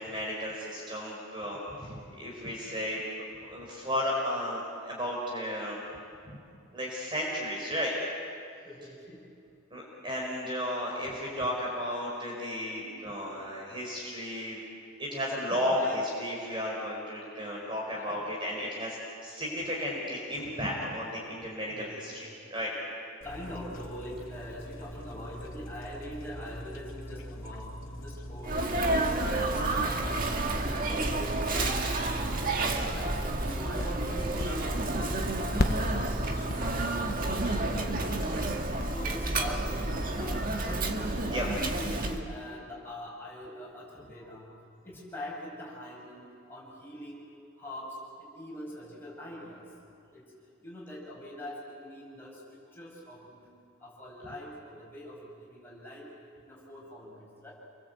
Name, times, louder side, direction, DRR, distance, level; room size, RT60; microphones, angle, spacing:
voice 1, 0.0-3.0 3.5-5.8 6.7-7.9 9.7-14.6 15.0-22.7 41.3-41.4, equal, 25° right, -3 dB, 4.7 m, -34 dB
voice 2, 8.6-9.3 12.7-13.3 15.5-16.0 18.0-18.4 21.7-22.0 23.2-27.7 28.0-29.2 29.5-30.2 30.5-38.4 38.8-40.8 41.3-44.5 44.8-47.2 47.6-49.7 50.1-50.2 50.6-53.5 53.8-56.1 56.4-57.5, left 1 dB, 10° left, -5 dB, 7.5 m, -43 dB
sound 1, 23.2-38.5, equal, 75° left, 2.6 m, -43 dB
Sneeze, 28.4-42.2, right 2 dB, 45° right, 1.9 m, -30 dB
sound 2, 33.7-38.9, left 1 dB, 50° left, 1.1 m, -33 dB
28.5 x 23.5 x 8.2 m, 2.4 s
head